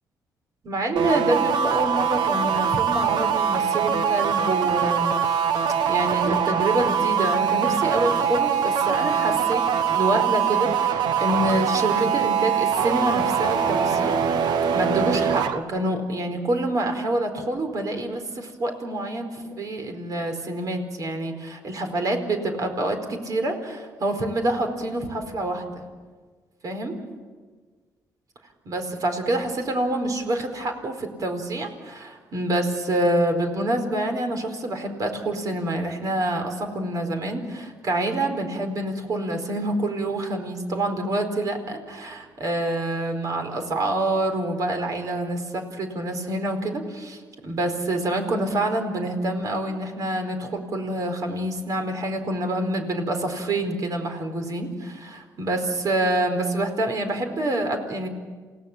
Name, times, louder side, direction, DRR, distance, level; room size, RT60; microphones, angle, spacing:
voice 1, 0.6-5.4 5.9-14.2 14.7-25.8 26.6-27.0 28.6-58.1, right 1 dB, 55° right, 5 dB, 4.5 m, -27 dB
sound 1, 1.0-15.6, right 7 dB, 80° right, 1.3 m, -23 dB
28.5 x 17.5 x 7.5 m, 1.5 s
cardioid pair, 85°, 7 cm